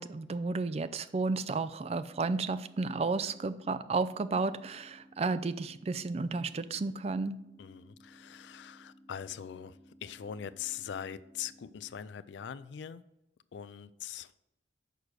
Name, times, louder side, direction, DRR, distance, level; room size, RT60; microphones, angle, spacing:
voice 1, 0.0-7.4, right 3 dB, 35° right, 0.3 m, -32 dB
sound 1, 2.0-12.0, equal, ahead, 2.2 m, -59 dB
voice 2, 7.6-13.0 13.5-14.4, left 9 dB, 70° left, 0.3 m, -42 dB
6.7 x 4.8 x 6.3 m
head